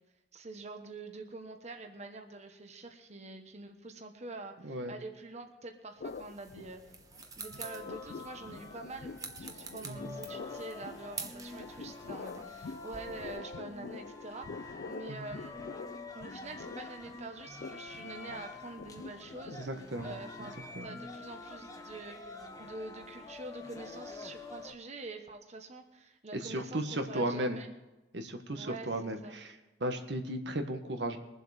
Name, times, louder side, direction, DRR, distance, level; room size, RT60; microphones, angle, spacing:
voice 1, 0.3-6.8 7.4-15.6 16.1-19.7 20.0-20.5 20.8-27.7 28.6-28.9 29.2-29.4, right 2 dB, 40° right, 5 dB, 1.2 m, -46 dB
sound 1, 6.0-7.2 7.5-20.7, left 4 dB, 60° left, 0.4 m, -47 dB
sound 2, 6.0-13.4, right 4 dB, 20° right, 1.1 m, -48 dB
sound 3, 7.1-24.7, left 3 dB, 20° left, 1.2 m, -47 dB
voice 2, 9.8-10.2 15.1-15.3 19.5-20.2 20.7-21.0 26.3-27.6 28.1-29.5 29.8-31.2, right 1 dB, 75° right, 5 dB, 1.4 m, -35 dB
22.5 x 7.7 x 5.0 m, 1.1 s
head